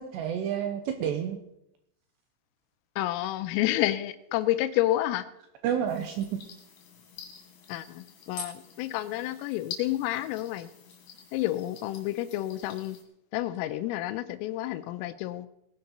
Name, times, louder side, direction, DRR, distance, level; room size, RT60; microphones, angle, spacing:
voice 1, 0.1-1.4 5.6-6.4, right 9 dB, 80° right, 6 dB, 2.5 m, -29 dB
voice 2, 3.0-5.3 7.7-10.7 11.3-13.0 13.3-15.5, left 15 dB, 90° left, 12 dB, 3.3 m, -29 dB
sound 1, 5.9-13.0, left 6 dB, 55° left, 3.4 m, -46 dB
19.0 x 10.5 x 4.1 m, 0.81 s
omnidirectional pair, 5.9 m